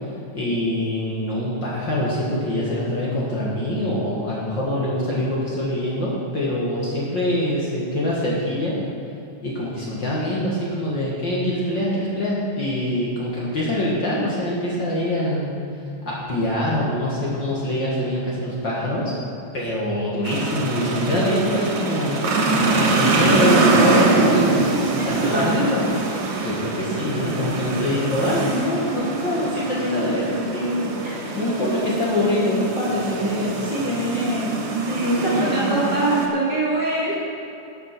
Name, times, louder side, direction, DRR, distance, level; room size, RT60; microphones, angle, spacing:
voice 1, 0.3-8.8 9.4-15.5 16.1-19.1 19.5-24.7 25.1-25.9 26.4-31.0 31.3-35.8, left 1 dB, 40° left, -6 dB, 2.1 m, -24 dB
sound 1, 20.2-36.3, right 3 dB, 70° right, 2.6 m, -23 dB
voice 2, 24.9-25.6 31.0-31.2 35.2-37.1, right 2 dB, 40° right, -6 dB, 1.9 m, -23 dB
12.0 x 7.0 x 6.1 m, 2.9 s
omnidirectional pair, 3.5 m